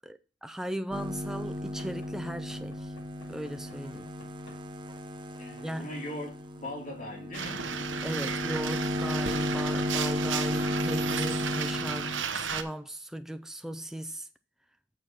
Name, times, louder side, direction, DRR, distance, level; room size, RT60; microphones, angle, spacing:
voice 1, 0.0-2.9 3.3-4.1 5.6-5.9 8.0-14.3, right 1 dB, ahead, 0.3 m, -38 dB
sound 1, 0.9-12.2, left 1 dB, 25° right, 0.8 m, -34 dB
Knock / Wood, 1.8-4.7 5.6-5.8 6.6-6.8 7.7-7.8, left 2 dB, 65° left, 5.1 m, -55 dB
voice 2, 5.4-7.6, left 1 dB, 40° left, 3.1 m, -40 dB
sound 2, 7.3-12.6, right 7 dB, 70° right, 0.9 m, -34 dB
6.9 x 6.2 x 5.7 m
head